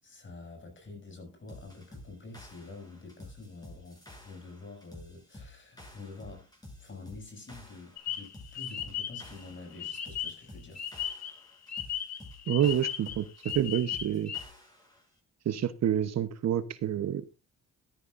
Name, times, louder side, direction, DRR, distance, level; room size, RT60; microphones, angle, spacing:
voice 1, 0.0-6.5 6.8-10.9, left 3 dB, 40° left, 7.1 m, -47 dB
sound 1, 1.5-15.0, left 1 dB, 15° left, 7.8 m, -51 dB
sound 2, 8.0-10.5 10.8-14.4, left 10 dB, 60° left, 2.8 m, -37 dB
voice 2, 12.5-13.3 13.5-14.3 15.4-17.4, right 10 dB, 60° right, 1.0 m, -28 dB
14.0 x 13.5 x 2.6 m
cardioid pair, 90°, 30 cm